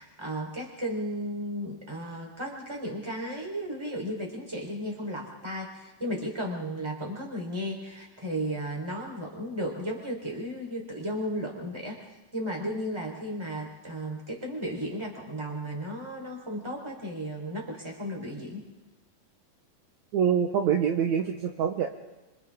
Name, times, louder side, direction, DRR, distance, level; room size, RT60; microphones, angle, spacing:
voice 1, 0.0-12.1 12.3-18.6, equal, 10° right, 0 dB, 3.9 m, -34 dB
voice 2, 20.1-21.9, right 8 dB, 70° right, 3 dB, 2.2 m, -25 dB
28.0 x 26.0 x 3.7 m, 1.1 s
omnidirectional pair, 3.9 m